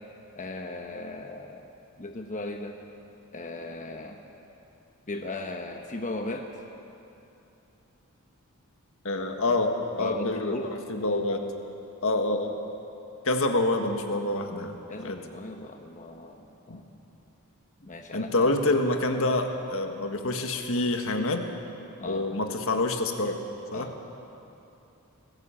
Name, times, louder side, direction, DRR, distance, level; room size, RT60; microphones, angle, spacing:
voice 1, 0.3-1.7 2.0-2.7 3.3-4.3 5.1-6.5 10.0-10.6 14.9-16.8 17.8-18.5 22.0-22.2 23.7-23.9, left 2 dB, 35° left, 4 dB, 1.1 m, -37 dB
voice 2, 9.0-10.6 10.9-11.4 12.0-12.6 13.2-14.8 15.0-15.2 16.7-16.8 18.1-21.5 22.0-23.4 23.7-23.9, left 2 dB, 70° left, 5 dB, 1.6 m, -27 dB
20.0 x 15.0 x 8.7 m, 2.9 s
head